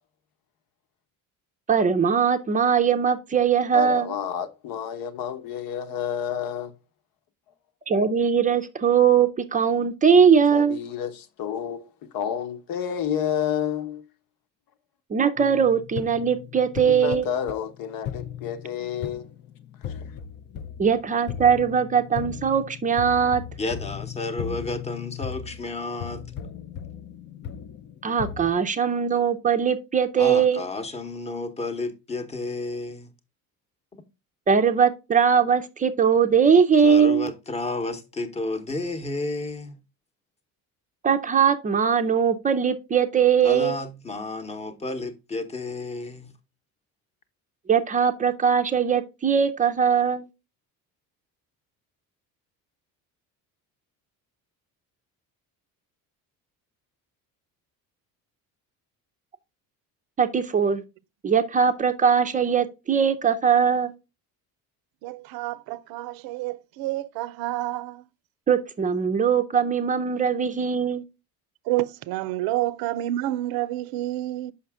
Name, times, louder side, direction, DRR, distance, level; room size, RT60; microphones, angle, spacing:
voice 1, 1.7-4.1 7.9-10.8 15.1-17.3 20.8-23.4 28.0-30.6 34.5-37.3 41.0-43.8 47.7-50.3 60.2-60.8 61.2-63.9 68.5-71.0, right 7 dB, 25° right, 0.5 m, -21 dB
voice 2, 3.7-6.7 10.5-14.0 16.8-19.3, left 9 dB, 70° left, 1.1 m, -30 dB
sound 1, 15.4-28.5, left 9 dB, 35° left, 0.4 m, -37 dB
voice 3, 23.6-26.2 30.2-33.1 36.8-39.8 43.4-46.3, left 2 dB, 20° left, 0.9 m, -31 dB
voice 4, 65.0-68.0 71.7-74.5, right 15 dB, 90° right, 0.6 m, -29 dB
6.6 x 5.8 x 3.4 m
cardioid pair, 165°, 35 cm